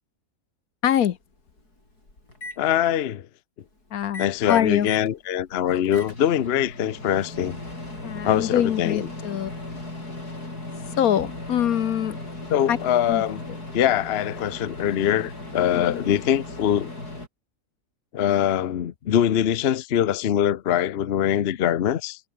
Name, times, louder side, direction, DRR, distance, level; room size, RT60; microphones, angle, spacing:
voice 1, 0.8-1.2 3.9-4.9 8.0-9.5 11.0-12.2 12.7-12.8 13.1-13.2 15.7-16.0, left 10 dB, 70° left, 1.3 m, -24 dB
Microwave oven, 1.6-2.6 4.0-5.1 5.5-17.3, left 2 dB, 90° left, 7.8 m, -37 dB
voice 2, 2.6-3.3 4.2-7.6 8.2-9.1 12.5-13.4 13.7-16.9 18.1-22.2, left 10 dB, 50° left, 0.9 m, -23 dB
omnidirectional pair, 1.6 m